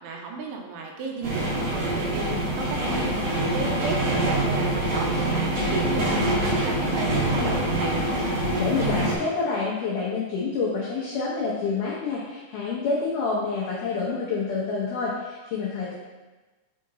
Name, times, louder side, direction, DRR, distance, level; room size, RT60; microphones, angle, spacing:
voice 1, 0.0-7.9, right 3 dB, 85° right, 1 dB, 2.7 m, -34 dB
sound 1, 1.2-9.2, right 1 dB, 55° right, 1.9 m, -25 dB
voice 2, 8.6-15.9, left 4 dB, 85° left, -6 dB, 1.8 m, -27 dB
6.5 x 3.8 x 3.9 m, 1.2 s
omnidirectional pair, 4.9 m